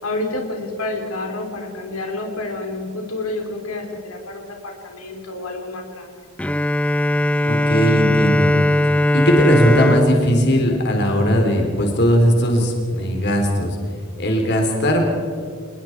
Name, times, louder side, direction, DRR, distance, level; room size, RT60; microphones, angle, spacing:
voice 1, 0.0-6.3, left 2 dB, 85° left, 2 dB, 3.4 m, -29 dB
Bowed string instrument, 6.4-11.9, left 1 dB, 5° left, 0.5 m, -19 dB
voice 2, 7.4-8.5 9.1-13.8 14.2-15.0, equal, 50° left, 2 dB, 3.6 m, -18 dB
28.0 x 20.5 x 4.6 m, 2.2 s
head